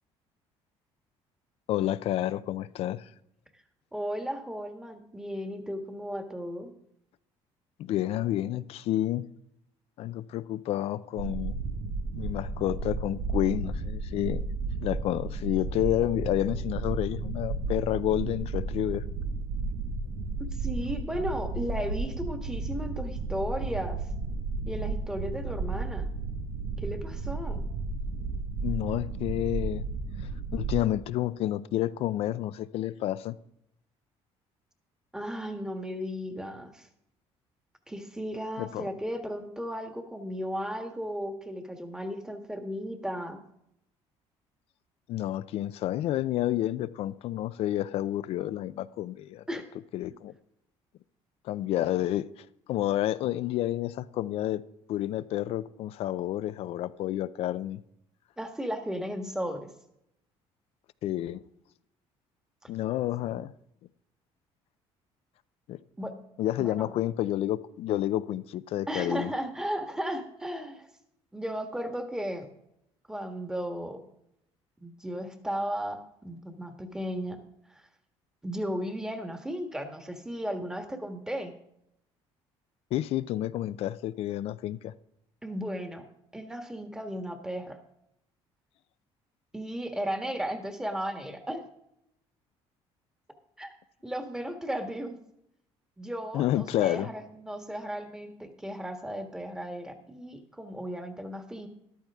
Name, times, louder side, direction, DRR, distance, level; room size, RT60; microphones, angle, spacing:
voice 1, 1.7-3.1 7.8-9.3 10.0-11.5 12.2-14.4 14.8-19.0 28.6-29.8 30.5-33.4 38.6-38.9 45.1-49.4 49.9-50.3 51.4-52.3 52.7-54.6 54.9-57.8 61.0-61.4 62.7-63.5 65.7-65.8 66.4-69.3 82.9-84.9 96.3-97.1, left 13 dB, 65° left, 0.5 m, -30 dB
voice 2, 3.9-6.7 20.5-24.0 24.7-26.1 26.8-27.6 35.1-36.9 37.9-43.4 49.5-49.6 58.4-59.7 62.6-62.7 63.3-63.4 66.0-66.1 66.6-66.9 68.9-70.9 71.3-72.5 73.1-74.0 74.8-77.4 77.7-77.9 78.4-81.5 85.4-86.1 86.3-87.8 89.5-91.6 93.6-93.8 94.0-95.2 96.0-101.7, equal, 5° right, 1.5 m, -35 dB
sound 1, 11.2-30.8, right 3 dB, 80° right, 1.4 m, -33 dB
13.5 x 11.5 x 3.6 m
cardioid pair, 120°, 11 cm